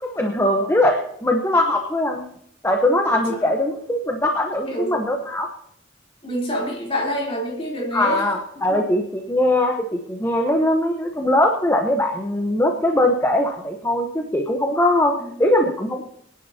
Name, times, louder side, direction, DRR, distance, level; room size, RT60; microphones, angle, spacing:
voice 1, 0.0-2.2 2.6-5.5 7.9-16.0, left 1 dB, 15° left, 3 dB, 0.9 m, -21 dB
voice 2, 6.2-8.2 8.7-8.8 15.2-15.3, equal, 30° left, -2 dB, 3.5 m, -27 dB
25.0 x 10.5 x 2.8 m, 0.72 s
head